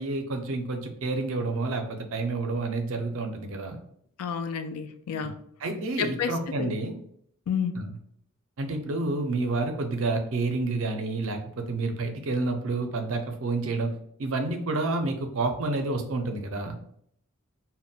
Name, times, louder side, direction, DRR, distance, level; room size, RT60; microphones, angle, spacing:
voice 1, 0.0-3.8 5.2-5.3 5.6-6.9 7.8-7.9 8.6-13.9 14.2-16.8, right 3 dB, 65° right, 5 dB, 0.5 m, -29 dB
voice 2, 4.2-5.4 6.0-6.7 7.5-7.7, left 7 dB, 90° left, 8 dB, 0.3 m, -30 dB
2.1 x 2.1 x 3.8 m, 0.68 s
head